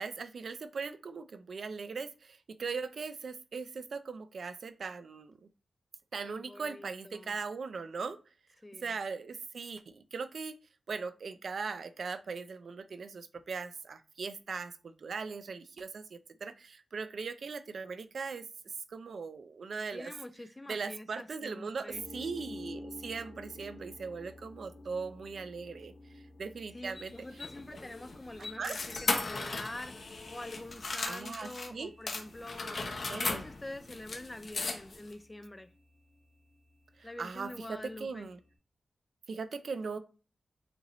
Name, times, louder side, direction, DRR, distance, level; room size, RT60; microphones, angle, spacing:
voice 1, 0.0-5.5 6.1-8.2 8.8-10.6 10.9-18.5 18.9-20.1 20.7-27.1 28.6-28.8 31.0-31.9 32.7-33.4 37.0-38.4 39.3-40.0, right 5 dB, 60° right, 0.4 m, -39 dB
voice 2, 6.2-7.3 8.6-8.9 19.9-22.0 26.7-32.8 33.2-35.7 37.0-38.3, left 1 dB, 15° left, 0.3 m, -46 dB
sound 1, 21.9-38.5, left 1 dB, 75° left, 1.6 m, -53 dB
sound 2, 27.0-31.7 32.1-35.1, left 3 dB, 50° left, 0.8 m, -37 dB
6.7 x 2.6 x 3.0 m
wide cardioid pair, 170°, 0 cm